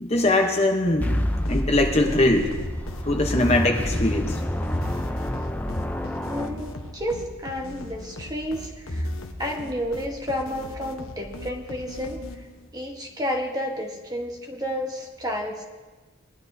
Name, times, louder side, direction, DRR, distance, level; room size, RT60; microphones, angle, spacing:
voice 1, 0.0-1.1 1.5-2.5 3.0-4.4, left 2 dB, 30° left, 3 dB, 0.9 m, -21 dB
sound 1, 1.0-7.2, equal, 10° left, 0.5 m, -28 dB
sound 2, 1.1-12.7, left 1 dB, 80° left, 1.1 m, -40 dB
voice 2, 6.3-9.1 9.4-12.4 12.7-15.7, equal, 20° right, 1 dB, 1.2 m, -31 dB
20.5 x 11.5 x 2.7 m, 1.3 s
head